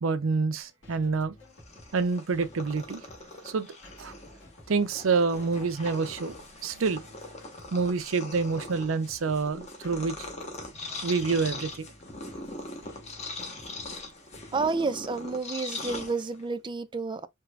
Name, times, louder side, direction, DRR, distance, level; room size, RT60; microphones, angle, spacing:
voice 1, 0.0-1.4 1.9-3.0 3.4-3.7 4.0-4.1 4.7-7.1 7.7-10.1 11.0-11.9, right 4 dB, 80° right, 0.6 m, -27 dB
sound 1, 0.6-14.7, left 1 dB, 65° left, 2.0 m, -53 dB
Purr, 1.4-16.6, left 2 dB, 35° left, 1.0 m, -41 dB
voice 2, 14.5-17.3, right 4 dB, 25° right, 0.4 m, -30 dB
4.6 x 2.9 x 2.3 m
head